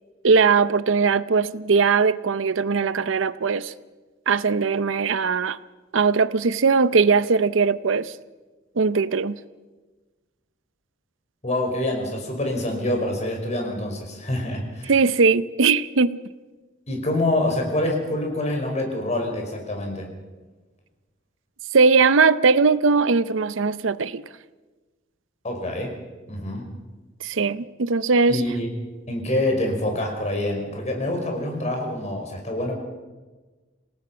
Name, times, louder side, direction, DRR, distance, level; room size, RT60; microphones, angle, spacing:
voice 1, 0.2-3.7 4.3-5.6 5.9-8.1 8.8-9.4 14.9-16.2 21.7-24.2 27.2-28.4, right 4 dB, 85° right, 0.7 m, -20 dB
voice 2, 11.4-14.9 16.9-20.1 25.4-25.9 26.3-26.6 28.3-28.7 29.1-32.7, left 1 dB, 35° left, 5.2 m, -26 dB
27.5 x 17.5 x 5.8 m
head